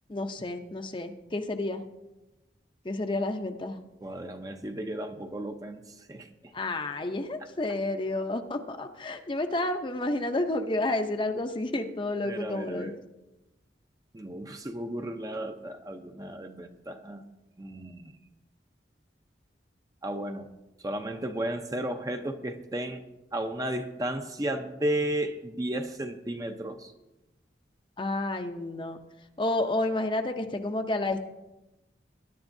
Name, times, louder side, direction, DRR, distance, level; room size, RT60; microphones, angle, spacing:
voice 1, 0.1-1.8 2.8-3.8 6.5-12.9 28.0-29.0 29.4-31.3, left 2 dB, 25° left, 6 dB, 0.6 m, -30 dB
voice 2, 4.0-6.5 12.2-13.0 14.1-17.2 17.6-18.1 20.0-20.5 20.8-23.0 23.3-26.9, right 1 dB, 20° right, 6 dB, 0.6 m, -34 dB
20.5 x 10.5 x 2.7 m, 1.0 s
head